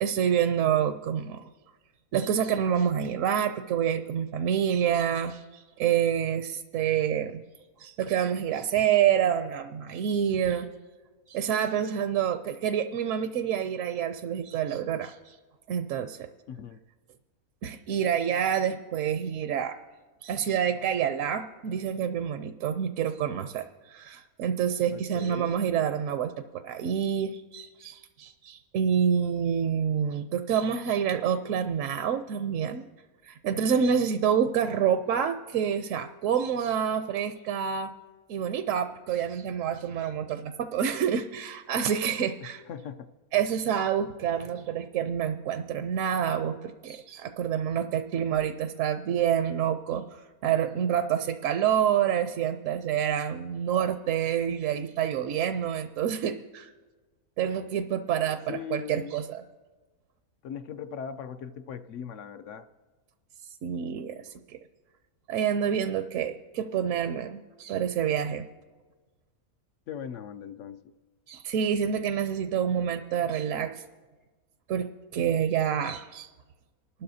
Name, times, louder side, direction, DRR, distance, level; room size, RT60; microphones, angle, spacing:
voice 1, 0.0-1.4 2.1-7.4 7.8-10.7 11.3-15.4 15.7-16.3 17.6-19.8 20.2-32.8 33.2-37.9 38.3-42.6 43.3-56.7 57.4-59.4 63.6-64.3 65.3-68.4 71.3-73.8 74.7-74.9 75.1-76.3, right 8 dB, 70° right, 9 dB, 0.9 m, -27 dB
voice 2, 16.5-16.8 24.9-25.5 42.4-43.1 58.5-59.1 60.4-62.7 69.9-70.8, left 8 dB, 65° left, 11 dB, 0.8 m, -39 dB
27.5 x 12.5 x 2.7 m, 1.3 s
omnidirectional pair, 1.5 m